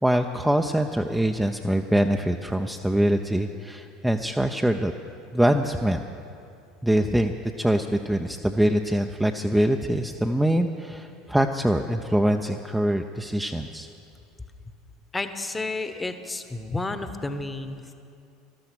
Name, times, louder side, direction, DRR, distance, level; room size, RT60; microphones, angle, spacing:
voice 1, 0.0-4.9 5.3-6.0 6.8-13.9, right 1 dB, 5° right, 4 dB, 0.6 m, -24 dB
voice 2, 15.1-17.9, left 2 dB, 15° left, 9 dB, 1.0 m, -31 dB
14.0 x 12.5 x 6.1 m, 2.6 s
figure-of-eight pair, 70°, 0 cm